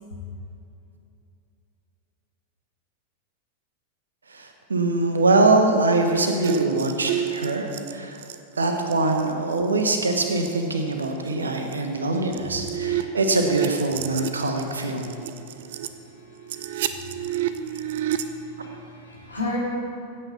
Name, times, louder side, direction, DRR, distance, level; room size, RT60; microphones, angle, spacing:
voice 1, 4.3-8.2 8.6-15.2, right 2 dB, 75° right, 4 dB, 1.2 m, -23 dB
sound 1, 6.4-9.3 9.6-9.8 10.2-10.5 11.0-11.1 11.7-11.8 12.2-15.9 16.3-18.2, right 12 dB, 55° right, 0.6 m, -30 dB
voice 2, 15.4-19.6, left 2 dB, 80° left, -5 dB, 3.2 m, -38 dB
16.0 x 8.7 x 4.3 m, 2.8 s
figure-of-eight pair, 90°, 0 cm